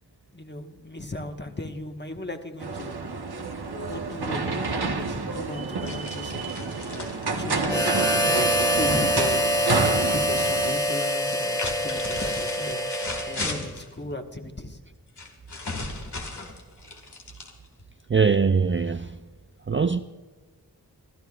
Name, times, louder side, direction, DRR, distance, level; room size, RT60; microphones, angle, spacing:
voice 1, 0.3-3.0 3.9-6.6 7.4-9.5 10.0-12.8 13.3-14.8, left 1 dB, 25° left, 1.3 m, -36 dB
sound 1, 2.6-10.7, right 3 dB, 70° right, 1.1 m, -29 dB
sound 2, 5.9-9.8 10.1-10.7 11.2-13.9 15.2-17.8, left 3 dB, 85° left, 1.9 m, -37 dB
Harmonica, 7.7-13.7, equal, 10° left, 1.4 m, -25 dB
voice 2, 18.1-19.1 19.7-20.0, right 5 dB, 30° right, 0.4 m, -21 dB
27.5 x 12.5 x 2.4 m
wide cardioid pair, 55°, 39 cm